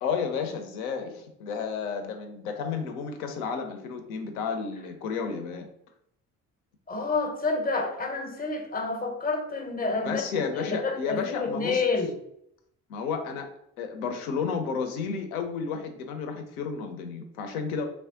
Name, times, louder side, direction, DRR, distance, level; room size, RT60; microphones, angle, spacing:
voice 1, 0.0-5.7 10.0-11.8 12.9-13.5 13.8-17.9, left 6 dB, 70° left, 6 dB, 0.6 m, -32 dB
voice 2, 6.9-12.1, left 3 dB, 20° left, 3 dB, 0.7 m, -29 dB
3.4 x 2.1 x 3.7 m, 0.74 s
figure-of-eight pair, 45°, 44 cm